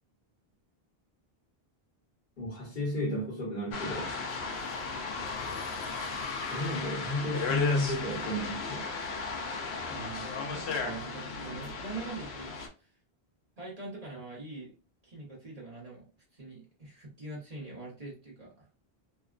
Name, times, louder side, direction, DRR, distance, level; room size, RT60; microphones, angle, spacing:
voice 1, 2.4-4.1 6.5-8.9, left 1 dB, 50° left, 1.2 m, -32 dB
sound 1, 3.7-12.7, left 4 dB, 85° left, 0.9 m, -35 dB
voice 2, 9.9-12.9 13.6-14.7 15.0-16.0 16.3-18.7, right 3 dB, 40° right, 1.1 m, -43 dB
2.9 x 2.1 x 2.4 m
omnidirectional pair, 1.0 m